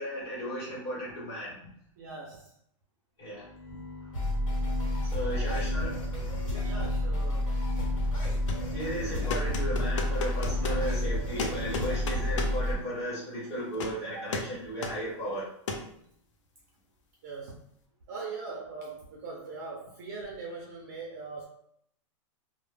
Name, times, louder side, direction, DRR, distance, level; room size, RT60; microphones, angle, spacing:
voice 1, 0.0-1.6 3.2-3.4 5.1-5.9 8.7-15.4, equal, 15° left, -8 dB, 1.0 m, -35 dB
voice 2, 2.0-2.5 5.3-5.7 6.6-7.5 14.1-14.3 17.2-17.6 18.1-21.4, right 4 dB, 30° right, -2 dB, 0.4 m, -41 dB
sound 1, 3.3-13.0, left 3 dB, 50° left, 1.0 m, -41 dB
sound 2, 4.1-12.7, left 1 dB, 85° left, 1.2 m, -30 dB
sound 3, 8.2-8.7 9.3-10.8 11.4-12.6 13.7-14.0 14.3-14.6 14.8-15.0 15.7-15.9, left 4 dB, 65° left, 0.5 m, -35 dB
2.1 x 2.0 x 3.1 m, 0.69 s
supercardioid pair, 180°, 17 cm